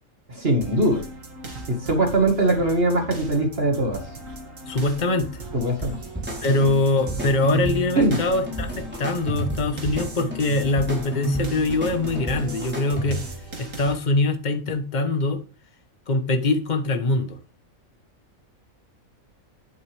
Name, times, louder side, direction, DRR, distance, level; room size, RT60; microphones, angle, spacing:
voice 1, 0.3-1.1 1.7-4.0 5.5-6.0 8.0-8.2, right 1 dB, 45° right, 2.0 m, -21 dB
sound 1, 0.6-13.9, right 2 dB, 65° right, 2.9 m, -38 dB
voice 2, 4.6-5.4 6.4-13.2 13.6-15.4 16.1-17.4, left 2 dB, 35° left, 1.3 m, -23 dB
sound 2, 5.8-13.4, right 2 dB, 5° right, 3.7 m, -31 dB
10.5 x 8.7 x 3.4 m
omnidirectional pair, 1.5 m